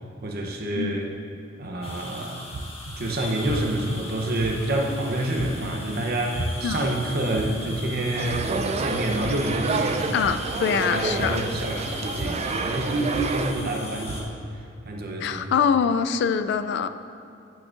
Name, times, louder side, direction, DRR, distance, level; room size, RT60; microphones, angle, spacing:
voice 1, 0.2-1.1 1.6-2.5 3.0-10.1 10.5-15.7, right 1 dB, 50° right, 1 dB, 0.8 m, -28 dB
sound 1, 1.8-14.2, left 1 dB, 30° left, 1.0 m, -39 dB
sound 2, 1.8-1.9 2.5-2.9 3.5-3.9 4.4-4.8 5.4-5.8 6.3-6.8 7.3-7.8 8.3-8.7 9.2-9.6 10.2-10.6 11.2-11.6 12.2-12.6 13.1-13.6 14.1-14.5, right 2 dB, 85° right, 0.6 m, -34 dB
sound 3, 8.2-13.5, right 3 dB, 35° right, 0.3 m, -29 dB
voice 2, 10.1-11.4 15.2-16.9, left 7 dB, 60° left, 10 dB, 0.3 m, -24 dB
8.8 x 8.5 x 2.5 m, 2.6 s
head